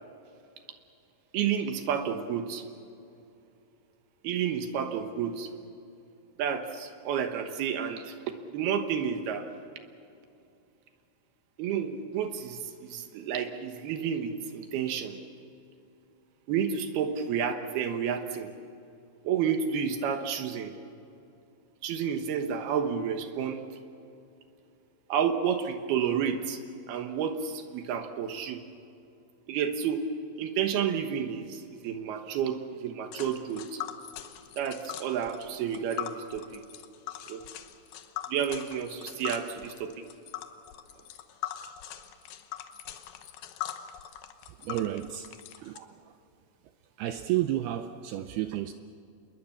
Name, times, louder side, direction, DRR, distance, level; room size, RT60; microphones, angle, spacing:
voice 1, 1.3-2.6 4.2-5.5 6.4-9.4 11.6-15.2 16.5-18.5 19.2-20.7 21.8-23.6 25.1-26.6 26.9-28.6 29.5-30.0 30.4-33.8 34.6-36.6 37.3-37.4 38.3-39.9 45.8-45.9, right 7 dB, 70° right, 7 dB, 2.8 m, -30 dB
Tick, 33.1-45.8, left 12 dB, 70° left, 2.4 m, -41 dB
voice 2, 44.5-45.3 45.6-45.8 46.1-46.2 47.0-48.7, right 13 dB, 85° right, 8 dB, 2.2 m, -31 dB
27.5 x 21.5 x 7.2 m, 2.6 s
omnidirectional pair, 5.4 m